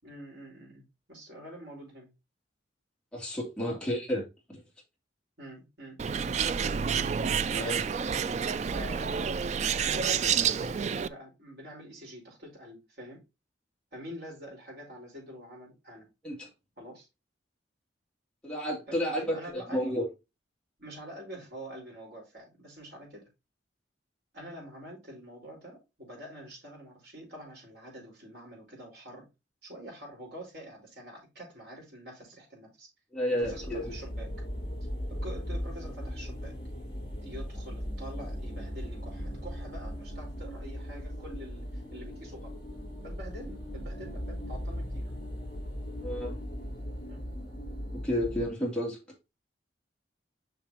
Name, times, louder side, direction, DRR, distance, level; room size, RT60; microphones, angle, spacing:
voice 1, 0.0-2.1 3.6-3.9 5.4-6.1 7.5-7.8 8.7-9.4 9.9-13.2 13.9-16.1 16.8-17.1 18.9-20.0 20.8-23.3 24.3-29.3 29.6-32.9 33.4-34.3 35.1-36.6 37.2-42.6 43.0-45.1 47.1-47.3, equal, 55° right, 4.7 m, -46 dB
voice 2, 3.1-4.6 7.5-7.8 16.2-16.5 18.4-20.0 33.1-33.9 46.0-46.4 48.0-49.0, equal, 5° left, 3.0 m, -31 dB
Bird, 6.0-11.1, right 7 dB, 35° right, 0.3 m, -29 dB
sound 1, 33.4-48.5, equal, 25° left, 3.4 m, -38 dB
7.1 x 5.8 x 3.0 m
head